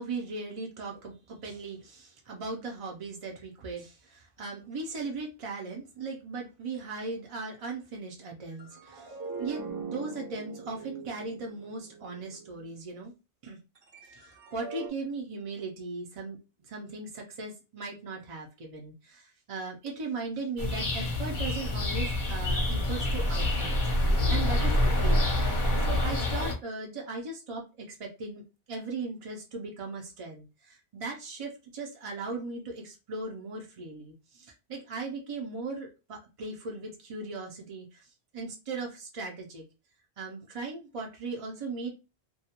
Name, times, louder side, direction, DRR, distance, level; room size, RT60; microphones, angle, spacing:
voice 1, 0.0-9.1 9.4-13.1 13.4-13.6 14.1-16.4 16.7-25.3 25.8-39.6 40.2-41.9, right 3 dB, 45° right, -1 dB, 0.5 m, -38 dB
sound 1, 8.5-12.8 13.8-14.9, right 5 dB, 65° right, 0.9 m, -42 dB
sound 2, 20.6-26.5, left 1 dB, 55° left, 0.8 m, -26 dB
2.3 x 2.1 x 2.8 m, 0.29 s
omnidirectional pair, 1.0 m